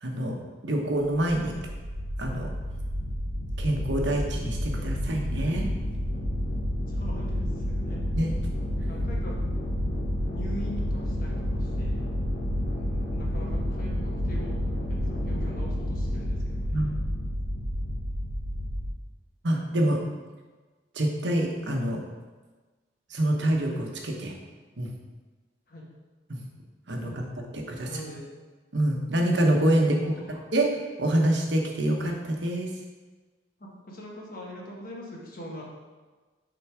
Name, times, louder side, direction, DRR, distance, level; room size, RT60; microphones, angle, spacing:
voice 1, 0.0-0.4 0.6-1.6 2.2-2.5 3.6-5.7 8.1-8.4 16.7-16.9 19.4-20.0 20.9-22.0 23.1-24.3 24.8-24.9 26.3-26.4 26.9-27.3 27.5-28.0 28.7-29.9 30.5-30.7 31.0-32.7, right 1 dB, 75° right, 1 dB, 1.0 m, -26 dB
sound 1, 1.2-18.9, equal, 75° left, 1.9 m, -30 dB
voice 2, 6.9-8.0 8.9-9.4 10.3-12.1 12.8-14.6 14.9-16.7 25.7-25.8 27.0-27.2 27.8-28.3 29.9-30.4 33.6-35.6, equal, 50° left, -3 dB, 1.4 m, -42 dB
6.7 x 3.8 x 4.9 m, 1.3 s
head